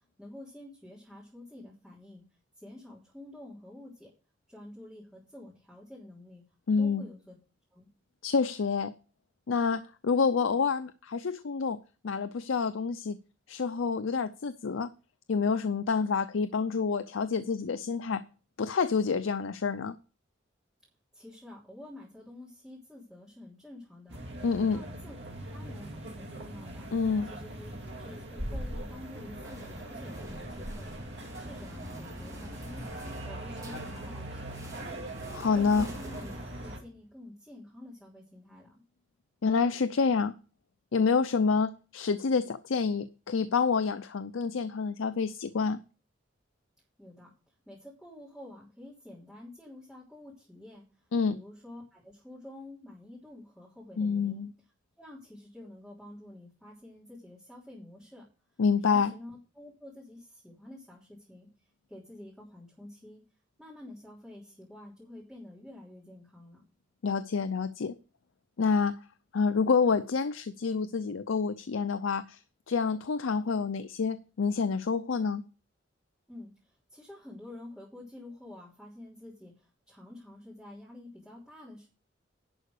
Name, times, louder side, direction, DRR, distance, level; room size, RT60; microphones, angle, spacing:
voice 1, 0.2-2.2 2.6-4.1 4.5-6.4 6.8-7.3 7.7-7.9 21.1-24.2 24.7-25.1 25.5-26.9 27.2-32.9 33.3-34.7 35.5-38.8 47.0-47.3 47.6-50.8 51.3-54.5 55.0-58.2 58.9-61.5 61.9-63.2 63.6-66.6 76.3-81.9, left 1 dB, ahead, -7 dB, 3.3 m, -49 dB
voice 2, 6.7-7.0 8.2-8.9 9.5-11.8 12.0-13.2 13.5-14.9 15.3-18.2 18.6-20.0 24.4-24.8 26.9-27.3 35.3-35.9 39.4-40.3 40.9-45.8 51.1-51.4 54.0-54.5 58.6-59.1 67.0-67.9 68.6-69.0 69.3-72.4 72.7-75.4, left 5 dB, 80° left, 12 dB, 0.5 m, -28 dB
sound 1, 24.1-36.8, right 1 dB, 60° right, 2.4 m, -41 dB
sound 2, 29.1-37.0, equal, 15° right, 2.6 m, -50 dB
11.0 x 4.9 x 6.5 m, 0.35 s
head